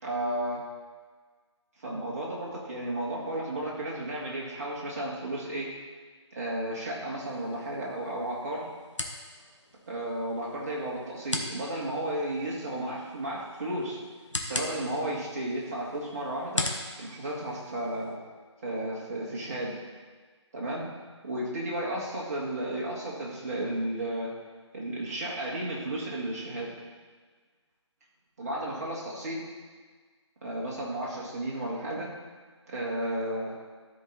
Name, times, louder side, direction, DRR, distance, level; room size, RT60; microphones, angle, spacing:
voice 1, 0.0-0.6 1.8-5.7 6.3-8.7 9.9-14.0 14.4-16.7 17.0-18.2 18.6-19.8 20.5-20.9 21.2-24.3 24.7-26.7 28.4-29.4 30.4-32.1 32.7-33.5, right 1 dB, 30° right, -5 dB, 2.2 m, -33 dB
sound 1, 7.2-18.2, left 2 dB, 80° left, 1.2 m, -40 dB
13.0 x 4.8 x 4.2 m, 1.5 s
figure-of-eight pair, 150°, 15 cm